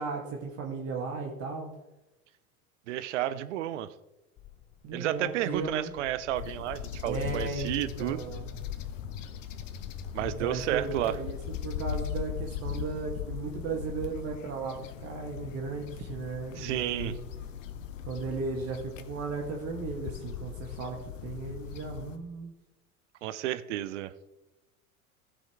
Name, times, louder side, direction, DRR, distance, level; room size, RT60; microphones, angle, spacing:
voice 1, 0.0-1.7 4.8-5.9 7.0-8.6 10.2-17.2 18.1-22.5, right 4 dB, 35° right, 0 dB, 1.5 m, -36 dB
voice 2, 2.9-3.9 4.9-8.2 10.1-11.2 16.6-17.1 23.2-24.1, right 12 dB, 55° right, 14 dB, 0.7 m, -31 dB
Walk footsteps, 4.4-12.1, left 9 dB, 15° left, 0.3 m, -45 dB
sound 1, 6.3-22.2, left 9 dB, 60° left, 0.9 m, -39 dB
16.0 x 5.3 x 3.5 m, 1.0 s
figure-of-eight pair, 80°, 44 cm